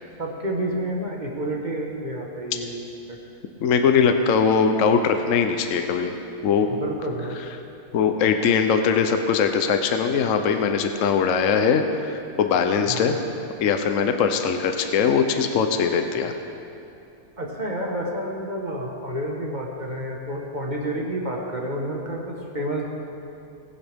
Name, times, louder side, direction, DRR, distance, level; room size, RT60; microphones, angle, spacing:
voice 1, 0.2-2.7 3.1-3.2 6.7-7.4 12.8-13.2 17.4-22.8, right 1 dB, 30° right, -1 dB, 1.4 m, -29 dB
voice 2, 3.6-6.1 6.4-6.7 7.9-13.2 13.6-16.3, left 6 dB, 65° left, 6 dB, 1.0 m, -21 dB
19.0 x 11.0 x 3.5 m, 2.7 s
omnidirectional pair, 1.6 m